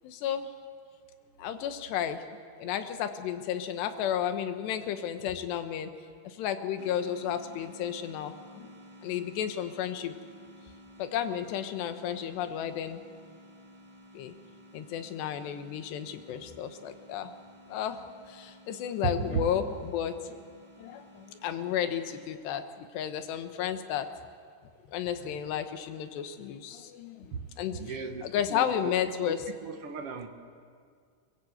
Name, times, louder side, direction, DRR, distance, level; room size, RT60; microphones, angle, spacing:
voice 1, 0.0-0.5 1.4-2.2 2.6-5.9 6.2-8.7 9.0-10.2 11.0-13.0 14.1-14.3 14.7-17.3 17.7-18.0 18.3-20.4 20.8-24.1 24.9-29.5, left 9 dB, 90° left, 8 dB, 3.4 m, -33 dB
sound 1, 6.8-22.2, equal, 15° right, 0.8 m, -53 dB
voice 2, 19.0-19.4 25.2-25.3 27.3-27.4 27.7-28.9 29.3-29.4 29.6-30.3, right 6 dB, 65° right, 5 dB, 1.4 m, -35 dB
24.0 x 22.0 x 7.9 m, 2.1 s
omnidirectional pair, 4.7 m